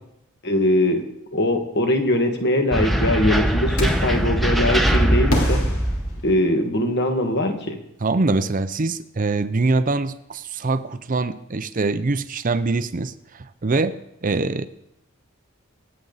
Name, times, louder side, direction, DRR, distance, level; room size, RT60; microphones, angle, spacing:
voice 1, 0.4-1.0 1.3-5.6 6.2-7.8, left 1 dB, 50° left, 4 dB, 1.8 m, -21 dB
sound 1, 2.7-6.3, equal, ahead, 1.0 m, -21 dB
sound 2, 3.8-4.2 5.3-6.8, left 1 dB, 70° left, 3.4 m, -28 dB
voice 2, 8.0-14.7, right 3 dB, 40° right, 12 dB, 0.6 m, -24 dB
25.5 x 8.9 x 4.0 m, 0.83 s
head